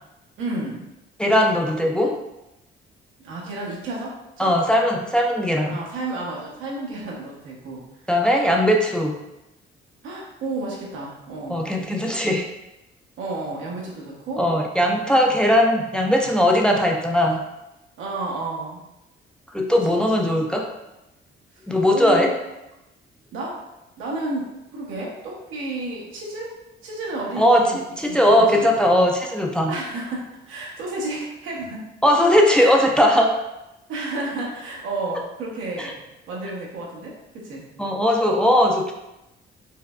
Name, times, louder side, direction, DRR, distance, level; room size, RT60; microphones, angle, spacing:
voice 1, 0.4-0.9 3.2-4.5 5.7-7.8 10.0-11.7 13.2-14.5 18.0-18.8 21.9-22.3 23.3-23.6 24.0-24.5 24.7-26.5 26.8-28.7 29.7-31.9 32.5-32.7 33.9-37.6, right 2 dB, 90° right, -3 dB, 1.0 m, -31 dB
voice 2, 1.2-2.1 4.4-5.8 8.1-9.2 11.5-12.5 14.4-17.4 19.5-20.7 21.7-22.3 27.4-29.7 32.0-33.3 35.8-35.9 37.8-38.9, equal, 5° left, 0 dB, 0.4 m, -19 dB
4.6 x 2.2 x 2.4 m, 0.92 s
cardioid pair, 90°, 20 cm